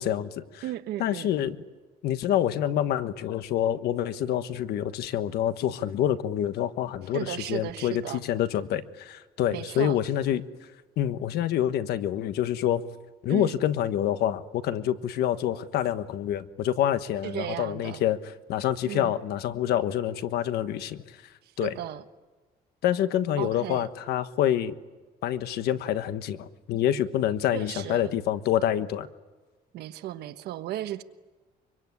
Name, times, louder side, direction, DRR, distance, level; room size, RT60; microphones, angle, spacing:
voice 1, 0.0-0.6 1.0-1.6 2.0-10.4 11.0-12.8 13.2-21.0 21.6-21.8 22.8-24.7 25.2-29.1, left 11 dB, 85° left, 11 dB, 1.3 m, -27 dB
voice 2, 0.6-1.3 7.1-8.2 9.5-10.0 13.3-13.6 17.2-18.0 18.9-19.2 21.6-22.0 23.4-23.9 27.5-28.1 29.7-31.0, right 13 dB, 90° right, 10 dB, 1.3 m, -35 dB
24.5 x 24.5 x 9.6 m, 1.3 s
cardioid pair, 125°, 16 cm